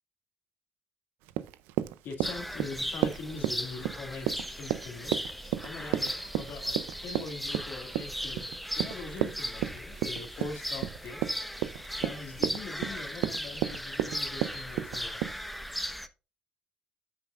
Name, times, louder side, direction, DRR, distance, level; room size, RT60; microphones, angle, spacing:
Run, 1.3-15.4, right 14 dB, 85° right, 0.5 m, -33 dB
voice 1, 2.0-5.2 5.6-6.8 7.0-8.5 8.8-11.2 12.0-15.3, left 4 dB, 75° left, 2.0 m, -42 dB
sound 1, 2.2-16.1, equal, ahead, 1.0 m, -37 dB
13.0 x 6.1 x 2.4 m
supercardioid pair, 55°, 3 cm